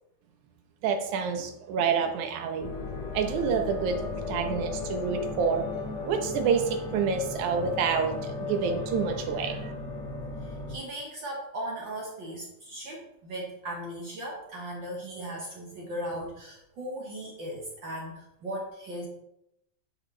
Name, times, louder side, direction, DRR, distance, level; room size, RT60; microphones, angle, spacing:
voice 1, 0.8-2.7 3.1-5.7 6.1-9.7, right 6 dB, 75° right, 5 dB, 2.3 m, -28 dB
sound 1, 2.6-10.7, left 4 dB, 80° left, 3.8 m, -35 dB
voice 2, 10.4-19.1, right 1 dB, 55° right, -2 dB, 1.3 m, -37 dB
10.0 x 5.1 x 3.2 m, 0.81 s
omnidirectional pair, 3.6 m